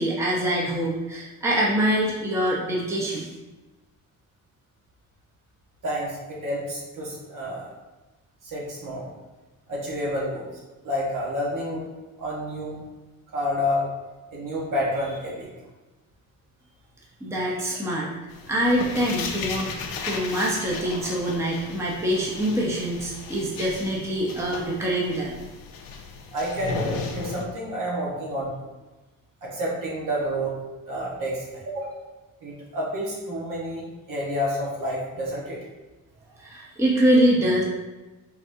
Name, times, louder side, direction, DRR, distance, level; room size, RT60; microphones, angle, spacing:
voice 1, 0.0-3.3 17.2-18.1 18.5-19.8 20.1-25.3 36.4-37.6, right 1 dB, 10° right, -4 dB, 0.7 m, -24 dB
voice 2, 5.8-7.7 8.4-9.1 9.7-10.5 10.8-11.9 12.2-12.8 13.3-13.9 14.3-15.5 26.3-28.5 29.4-30.5 30.9-32.0 32.4-35.6, equal, 65° right, -5 dB, 1.2 m, -29 dB
sound 1, 18.3-27.4, left 4 dB, 85° left, 0.7 m, -35 dB
4.5 x 4.0 x 2.6 m, 1.1 s
cardioid pair, 120°, 35 cm